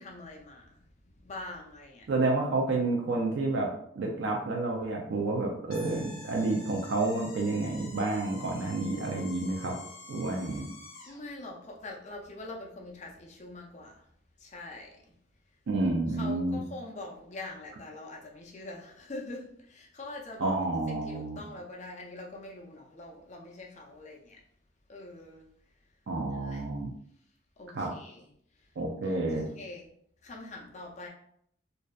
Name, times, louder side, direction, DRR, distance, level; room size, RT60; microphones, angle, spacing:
voice 1, 0.0-0.8 1.2-2.1 11.1-14.0 14.4-14.9 16.2-20.6 21.0-24.4 24.9-25.5 26.4-26.7 27.6-28.3 29.0-29.2 29.6-29.9 30.2-31.1, left 2 dB, 35° left, 0 dB, 0.4 m, -43 dB
voice 2, 2.1-3.7 4.0-9.8 10.1-10.7 15.7-16.6 20.4-21.4 26.1-26.9 27.7-27.9 28.8-29.5, right 2 dB, 65° right, 0 dB, 0.4 m, -29 dB
sound 1, 5.7-11.3, left 3 dB, 80° left, 0.7 m, -47 dB
2.6 x 2.1 x 2.3 m, 0.68 s
head